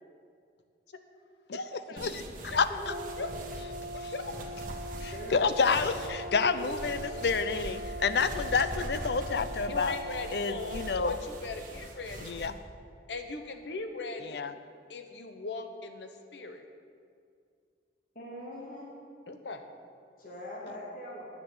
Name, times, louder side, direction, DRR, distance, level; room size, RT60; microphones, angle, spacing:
voice 1, 1.5-2.0 2.5-2.6 3.2-3.3 4.1-4.4 7.0-7.3 9.7-12.3 13.1-14.4 14.9-16.7 19.3-19.6, left 3 dB, 85° left, 7 dB, 1.0 m, -39 dB
sound 1, 2.0-12.5, right 1 dB, 50° right, 1.4 m, -42 dB
voice 2, 2.6-2.9 3.9-4.1 5.0-10.0 10.3-11.2 12.2-12.5 14.3-14.5, left 5 dB, 65° left, 12 dB, 0.5 m, -29 dB
Brass instrument, 2.8-11.2, right 1 dB, 85° right, 1.4 m, -41 dB
voice 3, 5.1-5.5 6.6-6.8 18.1-18.9 20.2-21.3, left 1 dB, 50° left, -3 dB, 2.5 m, -42 dB
10.5 x 6.5 x 8.2 m, 2.3 s
head